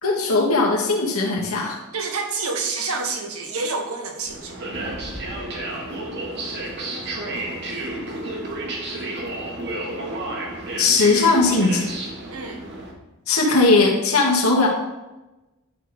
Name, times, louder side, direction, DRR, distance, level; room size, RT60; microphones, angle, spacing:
voice 1, 0.0-1.8 10.8-11.9 13.3-14.7, left 3 dB, 80° left, -2 dB, 2.1 m, -18 dB
voice 2, 1.9-4.6 12.3-12.6, right 4 dB, 85° right, 2 dB, 1.5 m, -28 dB
sound 1, 4.3-12.9, right 2 dB, 55° right, 1.6 m, -31 dB
11.0 x 4.3 x 4.9 m, 1.0 s
head